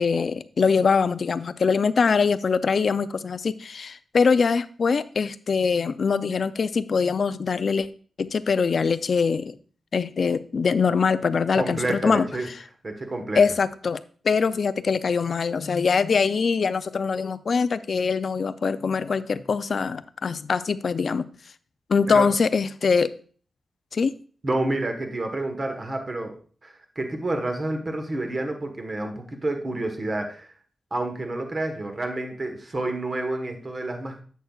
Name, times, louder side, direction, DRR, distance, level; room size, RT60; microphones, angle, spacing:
voice 1, 0.0-7.9 8.2-9.5 9.9-12.5 13.3-14.0 14.2-21.3 21.9-23.1 23.9-24.2, left 5 dB, 50° left, 13 dB, 0.4 m, -23 dB
voice 2, 11.6-12.5 12.8-13.4 22.1-22.3 24.4-26.4 26.6-30.5 30.9-34.2, right 2 dB, 30° right, 5 dB, 1.2 m, -29 dB
11.0 x 8.0 x 2.4 m, 0.43 s
wide cardioid pair, 155°, 0 cm